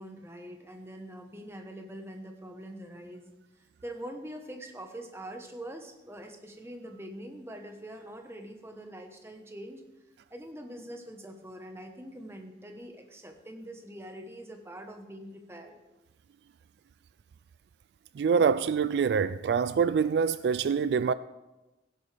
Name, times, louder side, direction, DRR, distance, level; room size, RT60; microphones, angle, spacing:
voice 1, 0.0-3.3 3.6-9.8 10.3-15.8, right 1 dB, 15° right, 1.1 m, -44 dB
voice 2, 18.2-21.1, right 6 dB, 70° right, 0.3 m, -25 dB
16.0 x 10.5 x 3.4 m
head